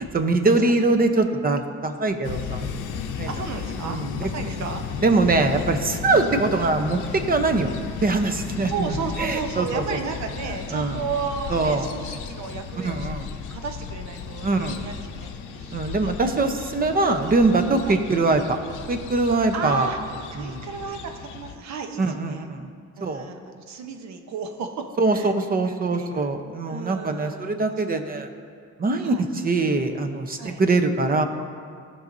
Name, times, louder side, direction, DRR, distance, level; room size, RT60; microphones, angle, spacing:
voice 1, 0.0-2.7 3.2-3.3 3.8-4.3 5.0-7.7 8.0-9.8 10.7-11.1 11.5-11.9 12.8-13.3 14.4-14.8 15.7-18.6 18.9-19.9 20.4-20.6 22.0-22.7 23.0-23.3 25.0-28.3 28.8-31.2, right 3 dB, 30° right, 7 dB, 0.7 m, -23 dB
sound 1, 2.2-21.6, left 6 dB, 85° left, 0.7 m, -35 dB
voice 2, 3.3-4.9 6.1-6.5 8.7-13.1 13.5-15.8 17.8-18.0 19.5-20.0 20.3-22.5 23.0-25.3 25.7-26.3 26.7-27.6 27.9-28.2 29.0-29.3 30.4-30.6, right 5 dB, 65° right, 5 dB, 0.9 m, -33 dB
sound 2, 8.6-18.6, left 5 dB, 40° left, 0.8 m, -43 dB
15.0 x 5.5 x 2.6 m, 2.2 s
cardioid pair, 90°, 30 cm